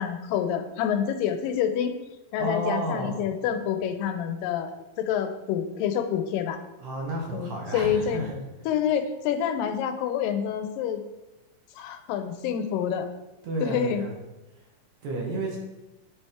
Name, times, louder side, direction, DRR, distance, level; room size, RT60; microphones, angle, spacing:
voice 1, 0.0-1.9 2.3-4.7 5.0-6.6 7.3-8.3 8.7-11.0 11.8-13.1 13.6-14.0, left 8 dB, 85° left, 8 dB, 2.3 m, -27 dB
voice 2, 2.4-3.2 6.8-8.4 13.4-14.1 15.0-15.6, right 2 dB, 65° right, 0 dB, 2.1 m, -31 dB
9.9 x 4.2 x 3.5 m, 1.0 s
omnidirectional pair, 3.8 m